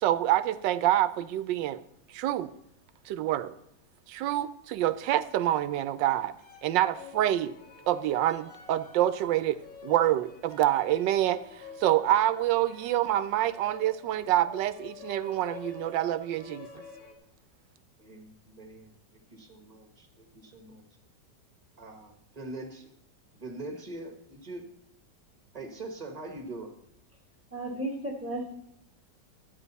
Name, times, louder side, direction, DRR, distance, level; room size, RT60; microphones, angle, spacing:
voice 1, 0.0-1.8 2.1-2.5 3.1-3.5 4.1-6.3 6.6-7.5 7.9-9.6 9.8-11.4 11.8-16.7, right 13 dB, 85° right, 14 dB, 1.3 m, -26 dB
sound 1, 6.4-17.1, left 6 dB, 85° left, 2.1 m, -49 dB
voice 2, 18.0-20.8 21.8-22.9 23.3-24.6 25.5-26.7, right 2 dB, 25° right, 4 dB, 1.4 m, -43 dB
voice 3, 27.5-28.5, right 1 dB, 10° right, 0 dB, 1.6 m, -34 dB
12.0 x 9.5 x 4.1 m, 0.74 s
omnidirectional pair, 1.9 m